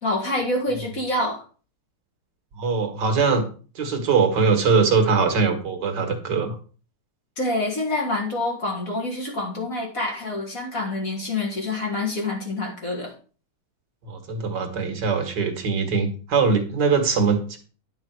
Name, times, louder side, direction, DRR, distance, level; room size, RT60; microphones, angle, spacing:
voice 1, 0.0-1.4 7.4-13.1, left 2 dB, 40° left, 0 dB, 2.1 m, -27 dB
voice 2, 2.6-3.5 3.8-6.6 14.1-17.6, right 5 dB, 55° right, 5 dB, 2.2 m, -22 dB
10.5 x 6.6 x 4.6 m, 0.39 s
omnidirectional pair, 2.3 m